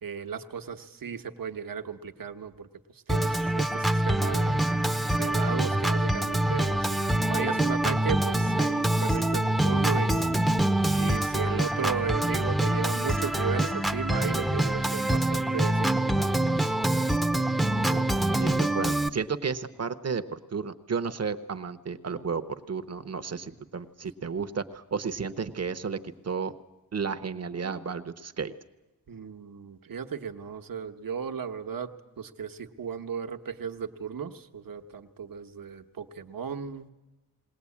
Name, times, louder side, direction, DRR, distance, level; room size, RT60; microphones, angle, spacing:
voice 1, 0.0-4.6 5.1-10.2 11.0-16.8 29.1-36.9, right 7 dB, 70° right, 6 dB, 1.2 m, -36 dB
Organ, 3.1-19.1, right 1 dB, ahead, 0.7 m, -25 dB
voice 2, 17.8-26.5 26.9-28.5, right 5 dB, 45° right, 12 dB, 0.9 m, -33 dB
21.0 x 18.5 x 8.5 m, 1.1 s
wide cardioid pair, 160°, 35 cm